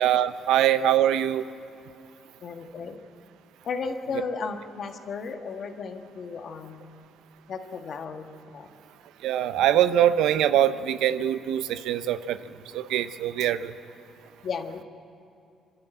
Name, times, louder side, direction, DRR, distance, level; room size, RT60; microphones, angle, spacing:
voice 1, 0.0-1.4 9.2-12.4 12.7-13.7, right 11 dB, 90° right, 13 dB, 0.6 m, -23 dB
voice 2, 2.4-3.0 3.6-6.8 7.5-8.7 14.4-14.8, left 5 dB, 60° left, 5 dB, 1.6 m, -34 dB
26.0 x 12.5 x 9.0 m, 2.6 s
cardioid pair, 90°, 0 cm